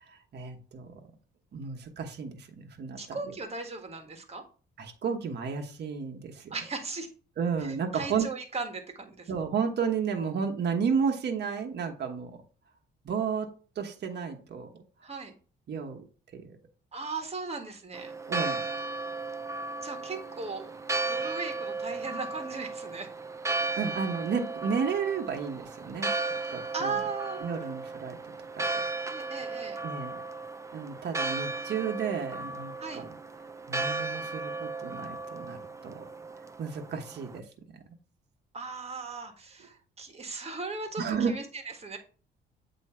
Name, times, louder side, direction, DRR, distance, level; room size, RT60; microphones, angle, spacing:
voice 1, 0.3-0.9 1.5-3.2 4.8-6.5 7.4-8.3 9.3-12.3 13.0-13.5 13.8-14.7 15.7-16.0 16.4-16.6 18.3-18.6 23.8-26.1 26.5-27.0 27.4-28.2 28.6-28.8 29.8-30.1 30.7-33.1 33.7-35.6 35.8-36.1 36.6-37.4 37.7-37.8 41.0-41.3, right 6 dB, 55° right, 3 dB, 1.2 m, -32 dB
voice 2, 3.0-4.4 6.5-7.1 7.6-9.3 15.0-15.3 16.9-18.1 19.8-20.8 21.1-23.1 26.7-27.7 29.1-29.8 32.8-33.0 38.5-42.0, right 4 dB, 30° right, 5 dB, 1.6 m, -37 dB
Church bell, 17.9-37.4, right 3 dB, 15° right, 0.6 m, -35 dB
8.3 x 3.1 x 4.4 m, 0.38 s
cardioid pair, 90°, 20 cm